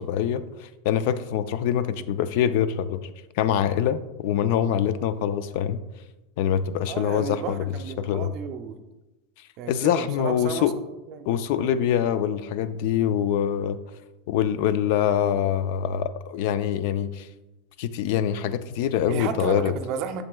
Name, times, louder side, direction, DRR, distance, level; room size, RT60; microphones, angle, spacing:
voice 1, 0.0-5.8 6.4-7.7 8.0-8.3 9.7-10.8 11.3-13.8 14.3-17.3 17.8-19.7, left 9 dB, 65° left, 13 dB, 0.4 m, -24 dB
voice 2, 6.9-8.8 9.6-10.7 11.1-12.0 19.0-20.3, right 7 dB, 50° right, 9 dB, 0.6 m, -34 dB
7.5 x 6.3 x 2.3 m, 1.0 s
supercardioid pair, 130°, 0 cm